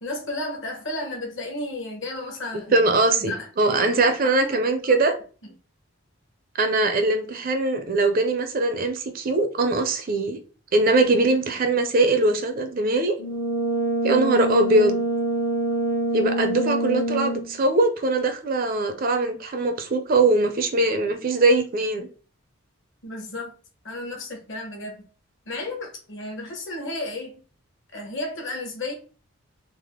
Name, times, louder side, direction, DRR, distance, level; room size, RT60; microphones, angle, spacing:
voice 1, 0.0-2.9 3.2-4.9 5.4-5.5 23.0-23.6 23.8-25.1 25.5-27.3 27.9-28.9, left 2 dB, 55° left, 1.0 m, -33 dB
voice 2, 2.7-5.1 6.6-10.4 10.7-13.2 14.0-15.0 16.1-22.1, right 2 dB, 40° right, 0.4 m, -21 dB
Brass instrument, 13.2-17.6, right 2 dB, 80° left, 0.9 m, -25 dB
3.3 x 2.0 x 3.5 m
head